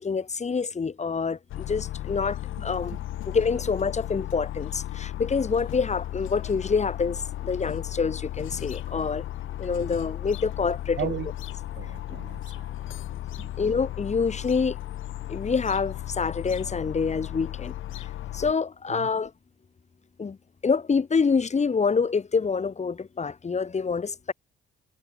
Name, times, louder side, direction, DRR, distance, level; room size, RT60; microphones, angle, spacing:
voice 1, 0.0-3.0 3.3-9.3 9.6-11.1 13.6-14.8 15.3-17.7 18.3-19.3 20.2-20.4 20.6-24.3, left 5 dB, 35° left, 4.1 m, -26 dB
sound 1, 1.5-18.5, left 14 dB, 80° left, 2.8 m, -35 dB
voice 2, 2.6-3.0 9.7-9.9 11.0-11.3 11.7-13.0 13.4-13.5 18.9-19.1, right 11 dB, 70° right, 2.8 m, -37 dB
cardioid pair, 90°, 20 cm